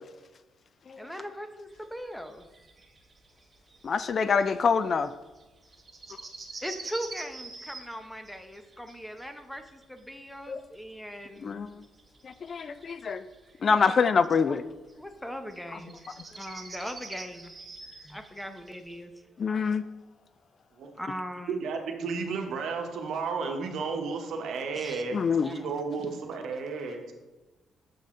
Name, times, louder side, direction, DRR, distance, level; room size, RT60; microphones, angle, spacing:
voice 1, 1.0-2.4 6.6-11.6 13.8-13.9 14.2-14.5 15.0-16.0 16.4-17.5 18.0-19.1 21.0-21.6 24.7-25.0 25.4-25.7, equal, 5° left, 7 dB, 0.7 m, -40 dB
sound 1, 1.7-19.0, right 3 dB, 30° right, 1.1 m, -47 dB
voice 2, 3.8-5.1 10.5-10.6 11.4-11.7 12.2-13.2 13.6-14.6 19.4-19.8 25.1-25.5, left 5 dB, 45° left, 13 dB, 0.3 m, -25 dB
voice 3, 21.6-27.1, right 4 dB, 75° right, 4 dB, 1.0 m, -33 dB
7.5 x 5.4 x 3.7 m, 1.1 s
cardioid pair, 90°, 0 cm